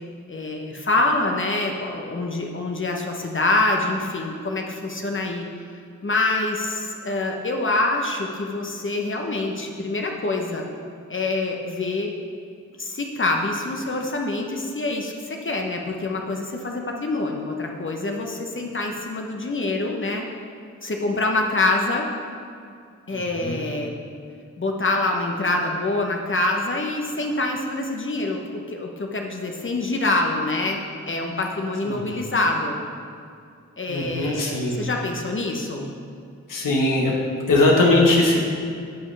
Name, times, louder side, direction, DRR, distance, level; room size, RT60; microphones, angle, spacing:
voice 1, 0.3-5.5 6.0-10.6 11.1-12.1 12.8-20.2 20.8-22.1 23.1-23.9 24.6-30.8 31.0-32.8 33.8-35.9, left 2 dB, 40° left, 1 dB, 1.0 m, -25 dB
voice 2, 33.9-34.8 36.5-37.1 37.5-38.5, left 2 dB, 85° left, -1 dB, 1.3 m, -20 dB
10.5 x 5.3 x 3.4 m, 2.3 s
cardioid pair, 50°, 32 cm